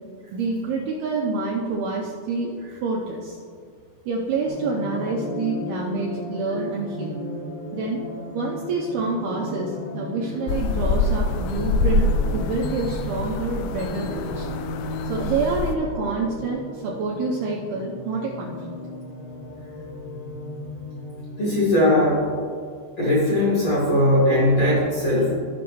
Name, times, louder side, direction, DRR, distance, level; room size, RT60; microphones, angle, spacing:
voice 1, 0.3-3.4 4.1-7.2 7.7-8.0 8.3-14.5 15.1-18.6, right 3 dB, 80° right, -3 dB, 2.4 m, -27 dB
sound 1, 4.5-22.4, left 1 dB, 65° left, 3.6 m, -35 dB
sound 2, 10.5-15.8, left 3 dB, 85° left, 2.5 m, -25 dB
voice 2, 21.4-22.3 23.0-25.4, left 1 dB, 45° left, -7 dB, 2.5 m, -19 dB
16.0 x 6.0 x 3.1 m, 2.1 s
omnidirectional pair, 5.4 m